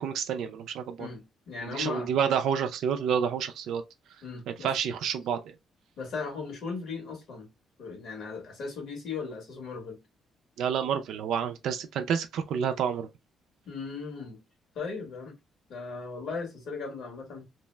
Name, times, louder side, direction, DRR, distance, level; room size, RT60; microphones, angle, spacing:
voice 1, 0.0-1.1 1.7-3.8 4.6-5.5 10.6-13.1, right 7 dB, 80° right, 0.3 m, -29 dB
voice 2, 1.0-2.1 4.2-4.7 6.0-7.5 7.8-10.0 13.6-14.4 14.7-15.4 15.7-17.4, left 4 dB, 70° left, 1.5 m, -37 dB
2.7 x 2.1 x 3.2 m
cardioid pair, 90°, 0 cm